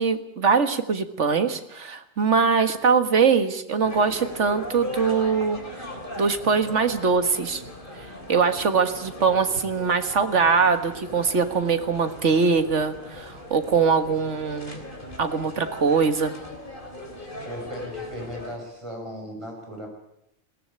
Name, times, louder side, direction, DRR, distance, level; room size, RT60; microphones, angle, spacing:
voice 1, 0.0-7.6 8.3-14.8 15.2-16.3, right 5 dB, 80° right, 8 dB, 1.9 m, -22 dB
sound 1, 3.8-18.6, left 1 dB, 45° left, 3.6 m, -39 dB
voice 2, 17.4-19.9, equal, 25° right, 0 dB, 6.6 m, -37 dB
22.0 x 18.0 x 8.8 m, 0.79 s
omnidirectional pair, 1.2 m